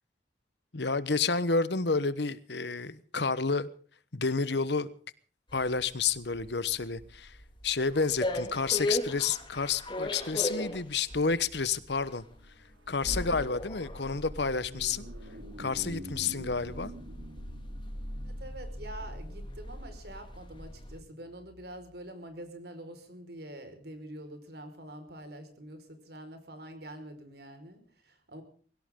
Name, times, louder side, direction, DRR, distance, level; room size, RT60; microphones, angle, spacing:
voice 1, 0.7-3.7 4.1-4.9 5.5-7.4 7.6-12.2 12.9-15.1 15.6-16.9, left 4 dB, 70° left, 1.1 m, -30 dB
sound 1, 5.5-21.0, left 1 dB, 25° left, 2.3 m, -38 dB
sound 2, 12.4-21.9, equal, 90° right, 3.0 m, -49 dB
voice 2, 18.1-28.4, right 1 dB, 60° right, 4.9 m, -46 dB
22.5 x 17.0 x 3.8 m
head